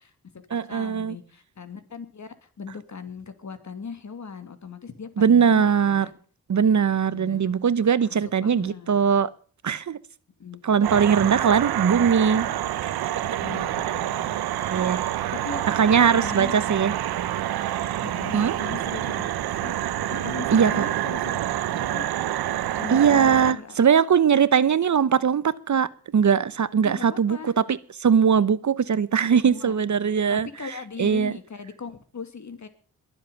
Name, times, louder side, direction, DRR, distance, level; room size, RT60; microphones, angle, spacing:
voice 1, 0.0-6.2 7.1-7.6 8.0-9.0 10.4-10.8 11.2-11.5 13.4-16.5 18.0-19.8 20.1-21.4 21.7-22.1 22.8-24.0 26.8-27.5 29.4-29.8 30.3-32.7, left 5 dB, 50° left, 11 dB, 2.6 m, -39 dB
voice 2, 0.5-1.2 5.2-6.1 6.5-9.3 9.6-10.0 10.6-12.5 12.8-12.9 14.7-15.0 15.7-16.9 18.3-18.6 20.5-20.7 22.9-25.9 26.1-30.5 31.0-31.3, right 7 dB, 50° right, 17 dB, 1.0 m, -20 dB
sound 1, 10.8-23.5, right 12 dB, 85° right, 0.9 m, -27 dB
22.5 x 7.7 x 6.9 m, 0.43 s
supercardioid pair, 50°, 37 cm